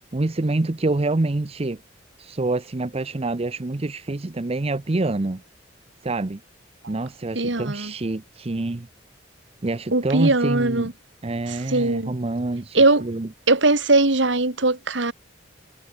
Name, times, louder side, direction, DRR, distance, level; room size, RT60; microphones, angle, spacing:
voice 1, 0.1-1.8 2.2-5.4 6.0-6.4 6.9-8.9 9.6-10.9 11.2-13.3, right 2 dB, 30° right, 0.7 m, -26 dB
voice 2, 7.4-7.9 9.9-10.9 11.7-12.1 12.7-13.1 13.5-15.1, right 2 dB, 70° right, 2.3 m, -20 dB
head